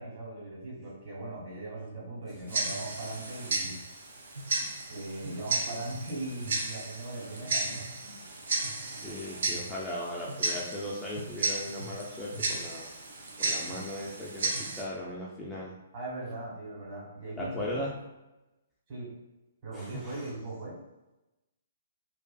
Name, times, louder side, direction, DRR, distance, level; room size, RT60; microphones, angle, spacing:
voice 1, 0.0-3.8 4.9-7.9 15.9-17.8 18.9-19.1 19.6-20.8, right 2 dB, 40° right, -6 dB, 1.2 m, -39 dB
Tick-tock, 2.5-14.8, right 3 dB, 60° right, 0.5 m, -34 dB
voice 2, 9.0-12.9 13.4-15.7 17.4-17.9 19.7-20.3, left 1 dB, 10° left, -5 dB, 0.3 m, -37 dB
2.4 x 2.4 x 2.2 m, 1.0 s
figure-of-eight pair, 120°, 0 cm